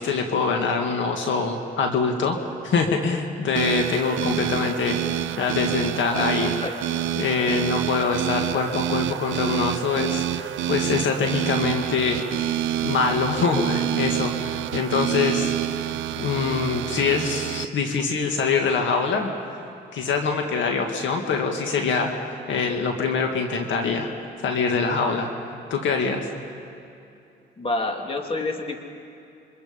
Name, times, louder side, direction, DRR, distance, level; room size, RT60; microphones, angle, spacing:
voice 1, 0.0-2.4 2.6-5.0 5.4-6.5 7.2-12.2 12.8-15.5 16.2-19.3 19.9-24.1 24.4-25.3 25.7-26.3, left 5 dB, 70° left, 3 dB, 2.0 m, -24 dB
sound 1, 3.6-17.7, right 12 dB, 75° right, 0.6 m, -28 dB
voice 2, 6.2-6.8 27.6-28.8, left 2 dB, 30° left, 3 dB, 2.6 m, -28 dB
28.0 x 24.0 x 5.2 m, 2.7 s
cardioid pair, 90°, 20 cm